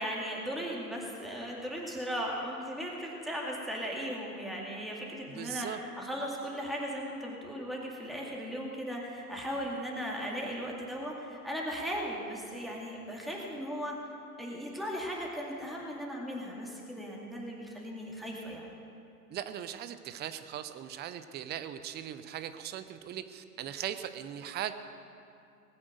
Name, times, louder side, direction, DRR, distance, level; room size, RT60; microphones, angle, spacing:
voice 1, 0.0-13.9 14.4-18.7, equal, ahead, -3 dB, 2.1 m, -37 dB
voice 2, 5.3-5.8 19.3-24.7, right 10 dB, 20° right, 11 dB, 0.6 m, -39 dB
19.5 x 8.7 x 6.7 m, 2.5 s
hypercardioid pair, 105°, 47 cm